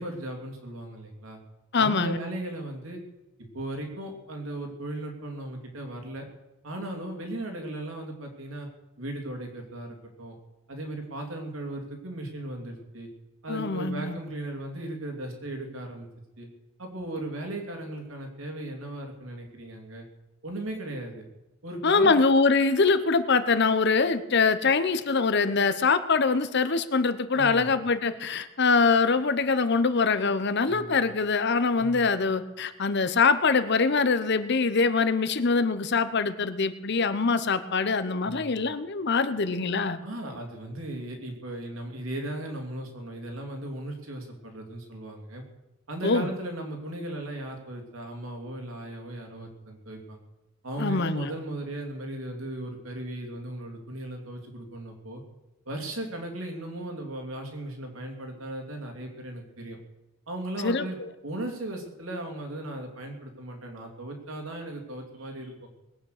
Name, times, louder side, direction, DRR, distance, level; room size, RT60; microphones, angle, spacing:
voice 1, 0.0-1.4 1.8-3.0 3.5-6.3 6.6-8.7 9.0-10.3 10.7-13.1 13.4-16.1 16.4-16.5 16.8-20.1 20.4-21.2 21.6-22.2 27.3-27.7 30.7-31.0 31.7-32.0 38.2-38.6 40.0-45.4 45.9-50.2 50.6-55.2 55.7-59.8 60.3-61.0 61.2-65.7, right 1 dB, 75° right, 2 dB, 3.0 m, -37 dB
voice 2, 1.7-2.2 13.5-14.2 21.8-40.0 46.0-46.3 50.8-51.3 60.6-61.1, left 4 dB, 55° left, 12 dB, 0.9 m, -24 dB
20.5 x 8.8 x 6.6 m, 0.97 s
head